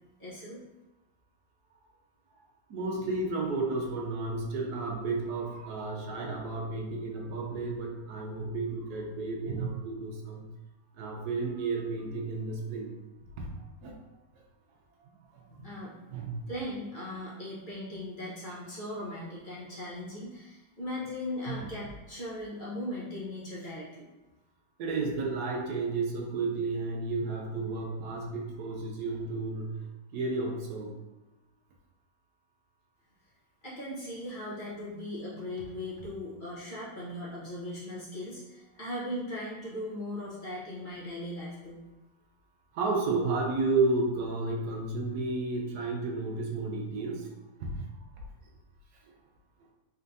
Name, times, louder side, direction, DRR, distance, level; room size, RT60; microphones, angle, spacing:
voice 1, 0.2-0.6 15.5-16.0 16.5-24.1 33.6-41.8, left 1 dB, 35° left, -8 dB, 1.0 m, -38 dB
voice 2, 2.7-10.5 11.0-12.9 13.4-13.9 15.0-15.4 16.1-16.5 21.5-21.7 24.8-29.8 30.1-31.0 42.7-47.3 47.6-48.2, right 3 dB, 65° right, 0 dB, 1.1 m, -32 dB
4.4 x 3.6 x 2.6 m, 1.1 s
omnidirectional pair, 2.0 m